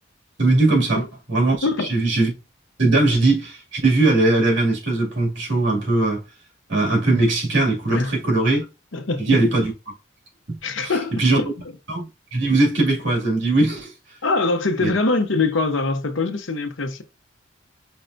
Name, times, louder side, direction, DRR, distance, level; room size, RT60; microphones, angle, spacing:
voice 1, 0.4-2.3 2.8-6.2 6.7-8.6 9.2-9.7 10.5-11.5 11.9-13.9 14.8-14.9, right 2 dB, 75° right, 2.4 m, -20 dB
voice 2, 8.9-9.3 10.6-11.5 14.2-17.0, left 3 dB, 80° left, 0.8 m, -23 dB
5.3 x 3.3 x 2.6 m
head